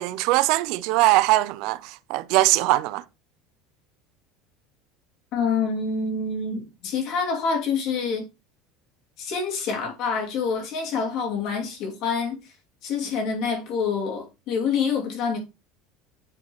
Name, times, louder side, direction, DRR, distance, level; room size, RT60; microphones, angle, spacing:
voice 1, 0.0-3.0, right 17 dB, 65° right, 0.4 m, -21 dB
voice 2, 5.3-8.3 9.2-12.4 12.8-15.4, left 5 dB, 55° left, 2.7 m, -26 dB
9.8 x 4.3 x 3.1 m
supercardioid pair, 135°, 0 cm